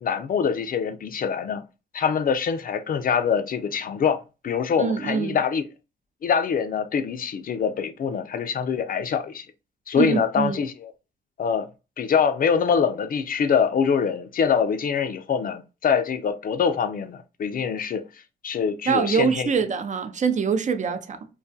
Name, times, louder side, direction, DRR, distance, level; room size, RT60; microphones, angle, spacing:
voice 1, 0.0-1.6 1.9-5.6 6.2-9.5 9.9-10.9 11.4-11.7 12.0-18.0 18.4-19.5, left 6 dB, 50° left, 0.4 m, -24 dB
voice 2, 4.8-5.4 10.0-10.6 18.9-21.2, right 6 dB, 40° right, 0.4 m, -24 dB
2.3 x 2.2 x 2.5 m
cardioid pair, 75°, 19 cm